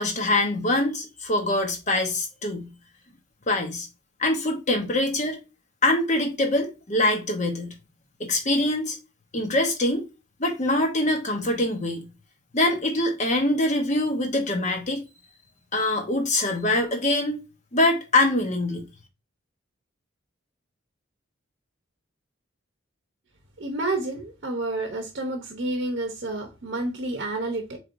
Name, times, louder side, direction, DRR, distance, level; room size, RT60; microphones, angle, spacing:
voice 1, 0.0-2.7 3.5-3.9 4.2-5.4 5.8-7.7 8.2-9.0 9.3-10.1 10.4-12.1 12.5-15.0 15.7-17.4 17.7-18.8, left 1 dB, 35° left, 0.9 m, -24 dB
voice 2, 23.6-27.8, right 2 dB, 60° right, 0.8 m, -29 dB
4.4 x 3.3 x 2.5 m
head